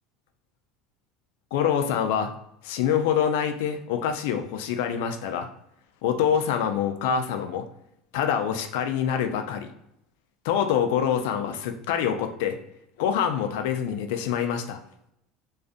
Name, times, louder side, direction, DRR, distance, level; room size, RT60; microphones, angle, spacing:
voice 1, 1.5-2.3 2.6-5.5 6.0-7.6 8.1-9.7 10.4-12.6 13.0-14.8, left 8 dB, 80° left, 7 dB, 0.3 m, -25 dB
2.5 x 2.3 x 2.5 m, 0.79 s
supercardioid pair, 140°, 0 cm